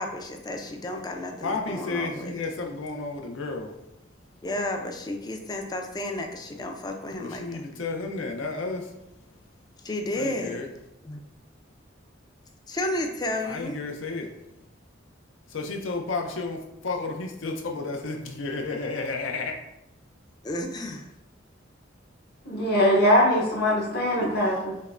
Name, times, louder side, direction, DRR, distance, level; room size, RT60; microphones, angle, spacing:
voice 1, 0.0-2.3 4.4-7.6 9.8-10.7 11.0-11.2 12.7-13.7 20.4-21.1, left 1 dB, 20° left, 4 dB, 0.3 m, -32 dB
voice 2, 1.4-3.7 7.2-8.8 10.2-10.7 13.4-14.3 15.5-16.6 16.8-19.5 24.2-24.3, left 3 dB, 80° left, 2 dB, 0.6 m, -32 dB
voice 3, 22.5-24.6, equal, 55° left, -4 dB, 1.0 m, -21 dB
5.4 x 2.1 x 2.5 m, 0.89 s
head